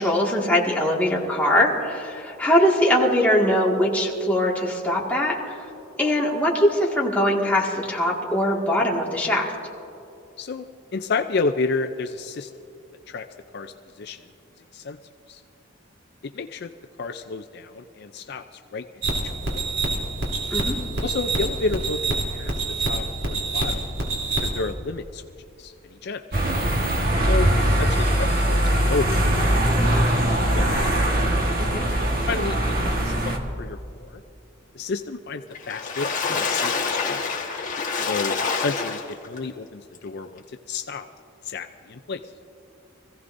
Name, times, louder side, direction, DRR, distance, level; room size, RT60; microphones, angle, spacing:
voice 1, 0.0-5.6 6.0-9.5 20.5-20.8 31.7-31.8, left 1 dB, 10° left, -4 dB, 1.9 m, -21 dB
voice 2, 10.4-12.5 13.1-13.3 13.5-14.2 14.7-15.0 15.3-15.4 16.3-16.7 17.0-18.4 18.7-18.8 19.4-19.6 21.0-22.5 22.8-23.9 24.4-25.2 25.6-26.2 27.2-29.2 29.6-30.0 30.5-30.9 32.3-34.2 34.7-37.2 38.0-41.1 41.4-42.2, left 3 dB, 55° left, 7 dB, 0.5 m, -31 dB
sound 1, 19.0-24.7, right 2 dB, 70° right, 3.1 m, -27 dB
sound 2, 26.3-33.4, right 1 dB, 45° right, 1.4 m, -21 dB
Water / Splash splatter, 35.5-39.4 39.9-40.0 40.4-40.5, left 5 dB, 40° left, 1.6 m, -27 dB
25.0 x 16.0 x 2.6 m, 2.8 s
head